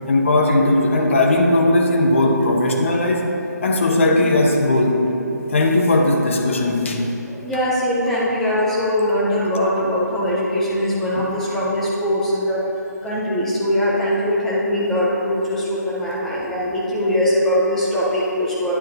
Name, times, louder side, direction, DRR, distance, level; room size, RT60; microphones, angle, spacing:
voice 1, 0.1-3.3 3.6-5.1 5.5-7.0 11.2-11.3, left 2 dB, 45° left, 2 dB, 0.7 m, -17 dB
voice 2, 7.4-12.6 13.0-18.7, equal, 5° left, -7 dB, 0.3 m, -21 dB
9.4 x 6.4 x 2.6 m, 2.9 s
hypercardioid pair, 165°, 10 cm